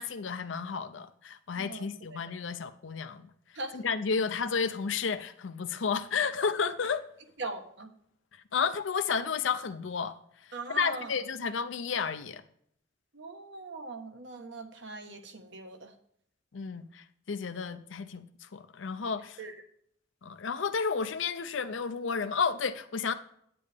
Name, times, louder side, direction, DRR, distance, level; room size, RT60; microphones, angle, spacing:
voice 1, 0.0-3.3 3.7-7.0 8.5-10.1 10.7-12.4 16.5-18.3 18.5-19.4 20.2-23.1, left 5 dB, 75° left, 0.6 m, -32 dB
voice 2, 1.6-2.2 3.5-3.8 7.4-7.9 10.5-11.1 13.1-15.9 19.4-19.6, right 2 dB, 70° right, 1.2 m, -40 dB
9.6 x 8.5 x 3.4 m
head